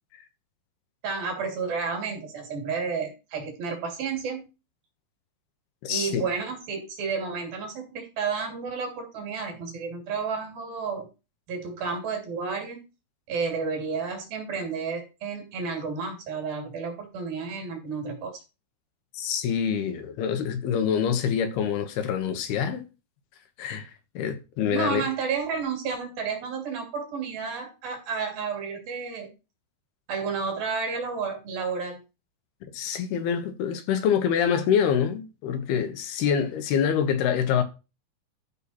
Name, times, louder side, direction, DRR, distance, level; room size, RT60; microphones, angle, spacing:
voice 1, 1.0-4.5 5.9-11.1 11.5-12.8 13.3-18.3 24.7-29.3 30.1-32.0, right 5 dB, 65° right, 4.6 m, -31 dB
voice 2, 5.8-6.2 19.1-22.9 23.6-25.0 32.7-37.6, left 8 dB, 80° left, 3.3 m, -26 dB
12.5 x 5.6 x 4.4 m
omnidirectional pair, 4.6 m